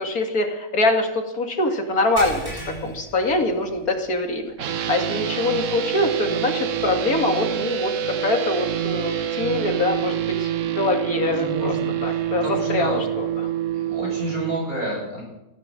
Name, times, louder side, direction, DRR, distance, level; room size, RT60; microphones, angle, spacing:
voice 1, 0.0-2.5 2.8-11.8 12.0-12.4 12.7-13.5, left 2 dB, 85° left, 4 dB, 2.6 m, -24 dB
sound 1, 2.2-4.0 4.4-4.6 5.1-5.2 6.8-6.9, right 2 dB, 15° right, 8.0 m, -36 dB
sound 2, 4.6-14.5, right 10 dB, 65° right, 1.1 m, -26 dB
voice 2, 11.3-13.0 13.7-15.2, equal, 80° right, -3 dB, 8.5 m, -30 dB
16.0 x 12.0 x 7.5 m, 0.94 s
omnidirectional pair, 1.5 m